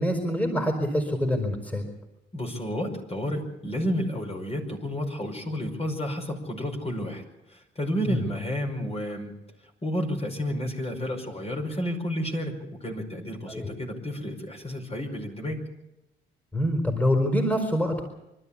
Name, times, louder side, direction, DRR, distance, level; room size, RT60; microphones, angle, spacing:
voice 1, 0.0-1.8 8.1-8.2 13.5-13.7 16.5-18.0, equal, 5° left, 4 dB, 4.4 m, -25 dB
voice 2, 2.3-7.2 7.5-9.3 9.8-15.6, equal, 30° left, 2 dB, 5.3 m, -31 dB
25.0 x 13.0 x 8.6 m, 0.93 s
cardioid pair, 90°, 20 cm